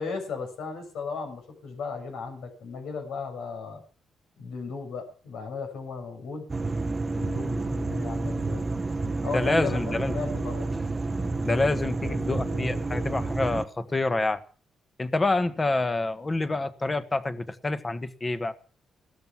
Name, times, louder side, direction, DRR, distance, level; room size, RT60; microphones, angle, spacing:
voice 1, 0.0-3.8 4.4-6.5 7.1-8.6 9.2-10.7 12.0-13.0, left 4 dB, 85° left, 5 dB, 6.8 m, -36 dB
sound 1, 6.5-13.6, right 3 dB, 25° right, 0.8 m, -29 dB
voice 2, 9.3-10.1 11.4-14.4 15.0-18.5, left 2 dB, 20° left, 11 dB, 1.4 m, -27 dB
16.5 x 13.5 x 6.1 m, 0.40 s
cardioid pair, 130°, 0 cm